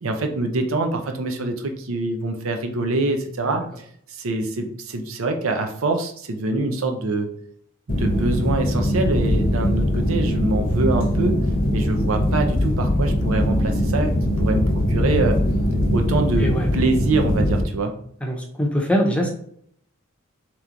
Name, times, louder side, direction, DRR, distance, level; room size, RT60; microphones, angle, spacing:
voice 1, 0.0-3.8 4.1-7.3 7.9-11.4 11.7-14.1 14.4-15.4 15.9-17.9, right 2 dB, 85° right, 5 dB, 0.7 m, -24 dB
sound 1, 7.9-17.6, left 1 dB, 45° left, 0.7 m, -21 dB
voice 2, 16.1-16.7 18.2-19.3, equal, 5° left, 1 dB, 0.6 m, -23 dB
3.4 x 3.0 x 3.7 m, 0.65 s
head